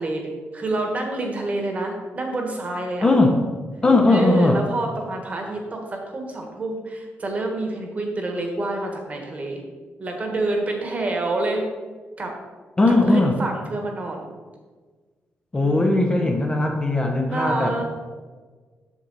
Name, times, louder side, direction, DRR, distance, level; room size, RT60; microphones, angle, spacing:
voice 1, 0.0-3.1 4.1-9.6 10.0-11.6 12.2-12.3 12.9-14.3 15.5-16.3 17.3-17.9, right 2 dB, 35° right, 2 dB, 1.4 m, -28 dB
voice 2, 3.0-3.4 3.8-4.6 12.8-13.4 15.5-17.8, left 2 dB, 20° left, 2 dB, 0.8 m, -18 dB
7.4 x 6.7 x 4.0 m, 1.4 s
wide cardioid pair, 150°, 5 cm